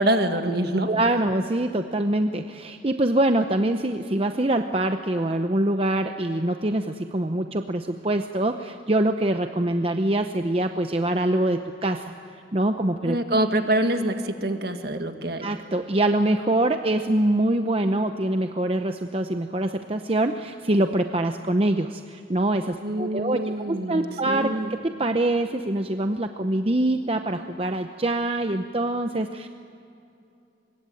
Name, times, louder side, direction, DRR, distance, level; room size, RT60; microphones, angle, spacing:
voice 1, 0.0-0.9 13.0-15.5 22.8-24.7, right 1 dB, 55° right, 6 dB, 1.9 m, -25 dB
voice 2, 0.9-12.1 12.5-13.2 15.4-29.5, right 1 dB, 30° right, 6 dB, 0.7 m, -24 dB
25.0 x 22.0 x 9.2 m, 2.7 s
head